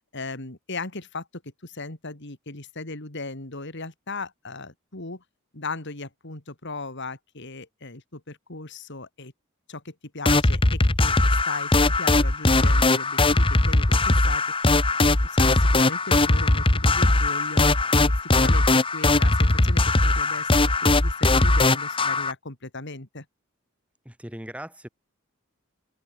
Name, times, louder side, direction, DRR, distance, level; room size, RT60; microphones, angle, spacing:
voice 1, 0.0-5.2 5.5-9.3 9.7-11.2 11.5-23.2, left 3 dB, 60° left, 3.3 m, -37 dB
sound 1, 10.2-22.3, left 2 dB, 25° left, 1.2 m, -20 dB
voice 2, 24.0-24.9, equal, 5° right, 6.3 m, -38 dB
head